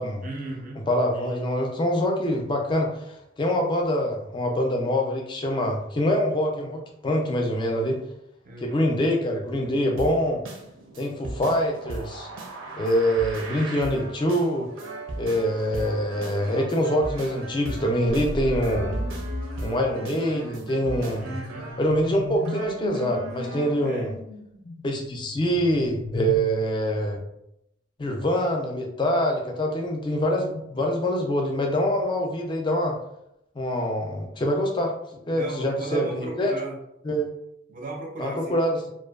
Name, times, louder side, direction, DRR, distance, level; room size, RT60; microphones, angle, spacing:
voice 1, 0.2-0.8 8.4-8.8 15.7-15.9 21.2-21.6 23.8-24.1 35.3-36.8 37.7-38.6, right 2 dB, 40° right, 0 dB, 0.5 m, -35 dB
voice 2, 0.9-8.0 8.6-10.4 11.0-12.3 12.8-14.7 15.2-19.0 19.6-21.4 21.8-24.1 24.8-27.2 28.0-33.0 33.6-34.9 35.3-36.5 37.0-37.3 38.2-38.9, equal, 25° left, 1 dB, 0.3 m, -25 dB
sound 1, 10.0-23.8, right 2 dB, 85° right, 0.5 m, -38 dB
sound 2, 18.1-26.4, left 2 dB, 85° left, 0.5 m, -36 dB
2.5 x 2.2 x 2.3 m, 0.80 s
head